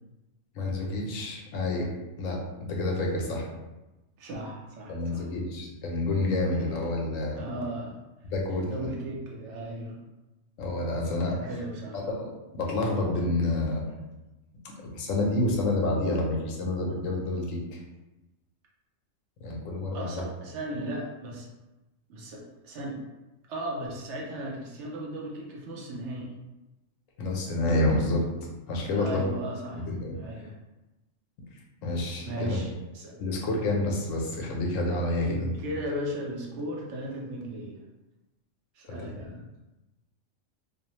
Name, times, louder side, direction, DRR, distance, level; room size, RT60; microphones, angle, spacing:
voice 1, 0.5-1.9 2.2-3.5 4.9-7.4 8.2-8.9 10.6-11.5 11.9-13.8 14.8-17.8 19.4-20.2 27.2-28.3 28.7-29.3 29.7-30.1 31.8-32.6 33.2-35.5 38.9-39.0 39.2-39.4, left 2 dB, 85° left, -1 dB, 1.0 m, -28 dB
voice 2, 4.2-5.3 6.4-6.9 7.4-8.0 8.5-10.0 11.3-12.1 19.9-21.5 22.1-23.0 23.5-26.3 28.9-29.9 30.1-30.5 32.2-33.2 35.3-37.8 38.7-39.4, right 1 dB, 70° right, -1 dB, 0.8 m, -36 dB
2.6 x 2.0 x 2.9 m, 1.1 s
omnidirectional pair, 1.3 m